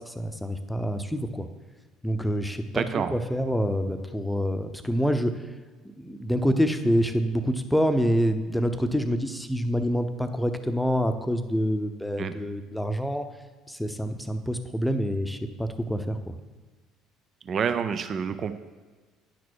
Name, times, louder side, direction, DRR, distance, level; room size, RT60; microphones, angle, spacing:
voice 1, 0.0-1.5 2.0-2.8 3.1-5.3 6.0-13.3 13.7-16.2, equal, 5° left, 8 dB, 0.8 m, -26 dB
voice 2, 2.7-3.1 12.2-12.3 17.4-18.5, right 7 dB, 45° right, 11 dB, 0.6 m, -28 dB
10.5 x 6.1 x 4.6 m, 1.4 s
figure-of-eight pair, 60°, 0 cm